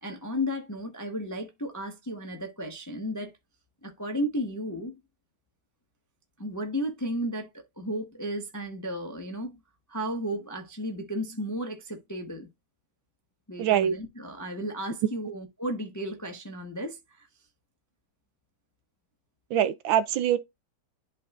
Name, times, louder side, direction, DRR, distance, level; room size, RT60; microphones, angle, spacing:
voice 1, 0.0-3.3 3.8-5.0 6.4-9.6 9.9-12.5 13.5-17.3, equal, 15° left, 0.6 m, -34 dB
voice 2, 13.6-14.0 19.5-20.4, right 10 dB, 75° right, 1.3 m, -23 dB
11.5 x 3.9 x 2.4 m
omnidirectional pair, 2.3 m